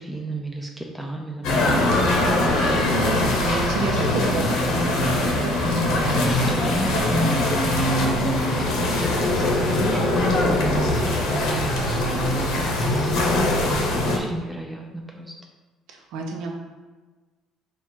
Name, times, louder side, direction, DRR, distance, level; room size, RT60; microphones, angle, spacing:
voice 1, 0.0-1.9 4.1-4.3 6.2-13.5 13.8-15.3, right 1 dB, ahead, -1 dB, 0.4 m, -33 dB
sound 1, 1.4-14.2, left 1 dB, 80° left, 0.8 m, -22 dB
voice 2, 2.4-6.5 15.9-16.5, right 3 dB, 80° right, 1 dB, 0.7 m, -30 dB
4.2 x 2.4 x 4.3 m, 1.3 s
cardioid pair, 130°, 0 cm